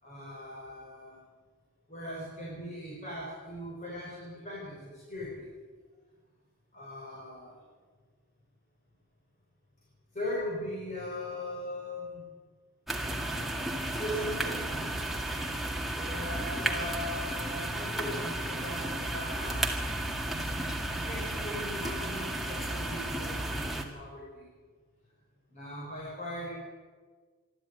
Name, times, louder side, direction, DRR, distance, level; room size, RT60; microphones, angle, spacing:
voice 1, 0.0-1.2 1.9-5.4 6.7-7.6 10.1-12.3 13.9-14.9 15.9-19.8 20.8-24.4 25.5-26.5, left 1 dB, 30° left, -4 dB, 5.7 m, -39 dB
sound 1, 12.9-23.8, right 1 dB, ahead, 1.9 m, -33 dB
26.0 x 13.0 x 9.5 m, 1.5 s
head